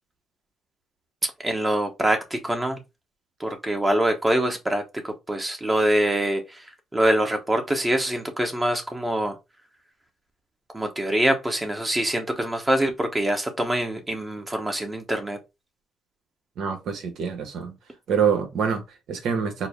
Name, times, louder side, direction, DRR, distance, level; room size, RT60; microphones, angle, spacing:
voice 1, 1.2-2.8 3.4-6.6 6.9-9.3 10.7-15.4, right 1 dB, 15° right, 1.0 m, -24 dB
voice 2, 16.6-17.7 18.1-19.7, right 7 dB, 75° right, 1.0 m, -26 dB
4.5 x 2.1 x 3.3 m
cardioid pair, 90°, 0 cm